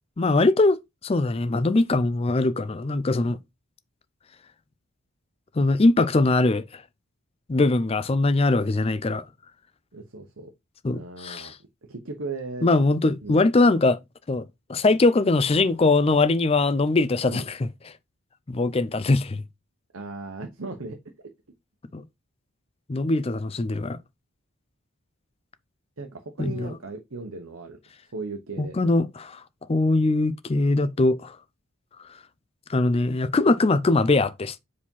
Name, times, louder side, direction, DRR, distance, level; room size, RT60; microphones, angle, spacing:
voice 1, 0.2-3.4 5.6-6.8 7.5-9.2 10.8-11.6 12.6-14.0 14.3-17.7 18.5-19.4 21.9-22.0 22.9-24.0 26.4-26.7 28.6-29.4 29.7-31.4 32.7-34.6, left 2 dB, 25° left, 0.4 m, -22 dB
voice 2, 9.9-10.5 10.9-11.5 11.9-12.7 13.2-13.4 17.2-17.5 19.9-21.0 26.0-27.8 28.1-28.7, right 3 dB, 65° right, 1.0 m, -36 dB
4.9 x 4.2 x 5.4 m
head